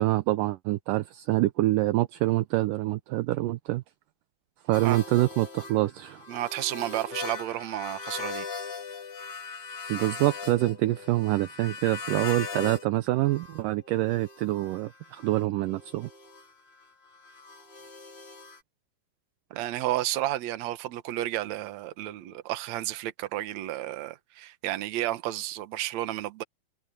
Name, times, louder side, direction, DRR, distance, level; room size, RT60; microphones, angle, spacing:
voice 1, 0.0-3.8 4.7-6.2 9.9-16.1, right 17 dB, 75° right, 2.1 m, -26 dB
sound 1, 4.7-12.9 13.2-18.6, left 4 dB, 40° left, 4.3 m, -40 dB
voice 2, 6.3-8.5 19.6-26.4, right 14 dB, 60° right, 2.1 m, -32 dB
omnidirectional pair, 4.2 m